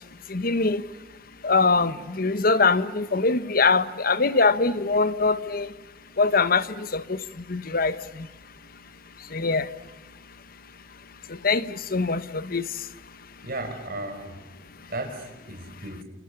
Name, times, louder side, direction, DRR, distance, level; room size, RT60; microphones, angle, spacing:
voice 1, 0.3-0.8 1.4-5.7 6.2-7.2 7.5-8.3 9.3-9.7 11.3-12.6, left 4 dB, 55° left, 1.1 m, -23 dB
voice 2, 13.4-14.4 14.9-16.0, right 2 dB, 55° right, 5.3 m, -35 dB
29.0 x 28.0 x 7.1 m
head